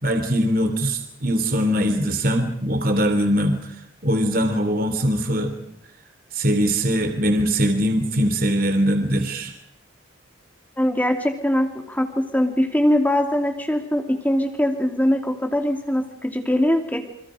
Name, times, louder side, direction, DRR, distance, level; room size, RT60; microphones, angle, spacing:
voice 1, 0.0-3.6 4.0-5.5 6.3-9.5, equal, 45° right, 6 dB, 3.2 m, -21 dB
voice 2, 10.8-17.0, left 1 dB, 10° left, 4 dB, 2.7 m, -22 dB
29.0 x 27.0 x 5.1 m, 0.74 s
head